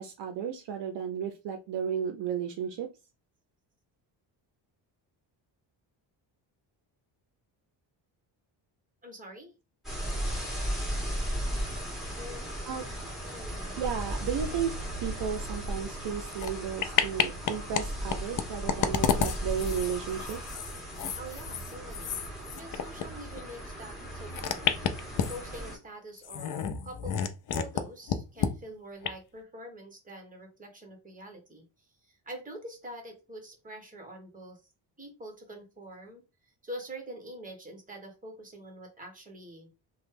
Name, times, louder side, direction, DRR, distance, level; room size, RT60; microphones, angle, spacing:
voice 1, 0.0-2.9 12.6-12.8 13.8-14.7 15.0-20.4, right 8 dB, 65° right, 6 dB, 0.6 m, -33 dB
voice 2, 9.0-9.5 12.1-12.4 13.2-13.8 21.2-22.2 22.6-27.2 27.5-31.6 32.0-34.6 35.0-36.2 36.6-39.7, right 1 dB, 15° right, 4 dB, 1.2 m, -45 dB
sound 1, 9.8-25.8, equal, ahead, 1.8 m, -36 dB
sound 2, 16.3-16.5 16.8-17.8 18.1-23.1 23.3-23.4 24.3-25.6 26.2-27.8 28.1-28.5 29.0-29.1, left 8 dB, 45° left, 0.5 m, -30 dB
3.0 x 2.2 x 3.3 m, 0.28 s
cardioid pair, 95°, 47 cm